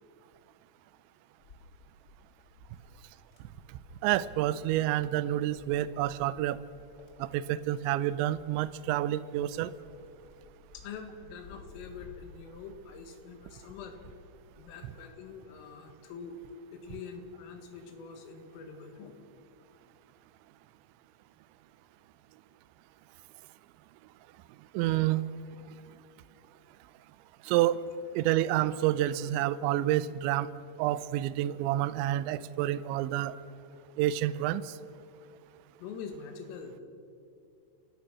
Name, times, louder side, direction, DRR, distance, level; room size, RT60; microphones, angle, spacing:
Wind, 1.4-15.5 15.9-17.4, left 3 dB, 30° left, 2.7 m, -56 dB
voice 1, 4.0-6.6 7.2-9.7 24.7-25.2 27.5-27.8 28.2-30.5 30.8-33.4 34.0-34.7, right 13 dB, 80° right, 16 dB, 2.8 m, -28 dB
voice 2, 10.7-14.0 14.6-16.4 16.7-19.3 35.8-36.8, left 5 dB, 85° left, 6 dB, 4.4 m, -45 dB
29.5 x 14.0 x 6.2 m, 2.7 s
omnidirectional pair, 5.8 m